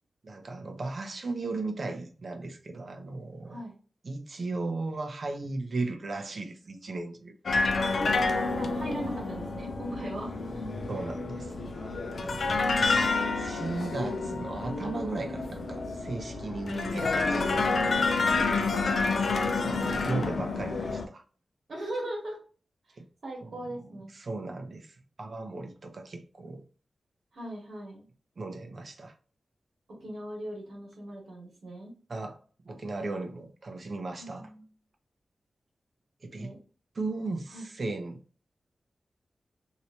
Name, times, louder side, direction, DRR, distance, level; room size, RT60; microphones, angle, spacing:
voice 1, 0.2-3.6 4.0-7.3 10.9-12.6 13.3-18.2 19.4-21.2 23.0-23.1 23.4-23.6 23.8-26.6 28.4-29.1 32.1-32.4 32.6-34.5 36.2-36.5 36.9-38.2, right 3 dB, 60° right, 0.7 m, -36 dB
sound 1, 7.5-21.0, left 3 dB, 70° left, 0.5 m, -29 dB
voice 2, 8.5-10.7 18.3-18.6 21.7-22.4 23.2-24.1 27.3-28.0 29.9-31.9 34.2-34.7 36.4-36.6 37.5-37.6, right 1 dB, 75° right, 1.5 m, -39 dB
3.1 x 2.8 x 2.8 m
cardioid pair, 70°, 0 cm